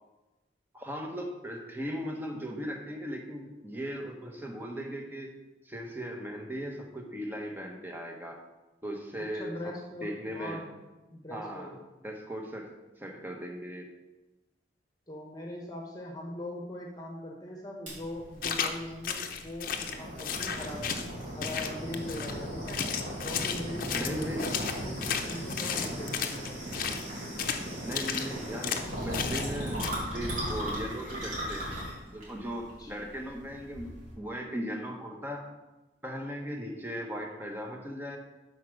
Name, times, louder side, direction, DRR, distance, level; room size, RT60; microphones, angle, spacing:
voice 1, 0.7-5.3 5.6-8.4 8.8-10.6 11.3-11.7 12.0-12.7 13.0-13.9 23.9-24.5 27.8-31.8 32.1-35.4 36.0-38.2, equal, 10° right, 1 dB, 1.2 m, -38 dB
voice 2, 9.2-10.8 11.1-11.8 15.1-20.9 21.4-22.9 23.2-26.6 32.7-33.0, left 1 dB, 20° left, 0 dB, 1.2 m, -41 dB
sound 1, 17.9-34.1, equal, 45° right, 3.5 m, -37 dB
sound 2, 18.4-18.8 19.0-21.1 21.4-22.3 22.7-27.0 27.4-27.6 27.9-28.3 28.6-28.9 29.1-29.5 29.8-29.9, left 7 dB, 50° left, 0.8 m, -33 dB
8.2 x 5.2 x 6.4 m, 1.1 s
head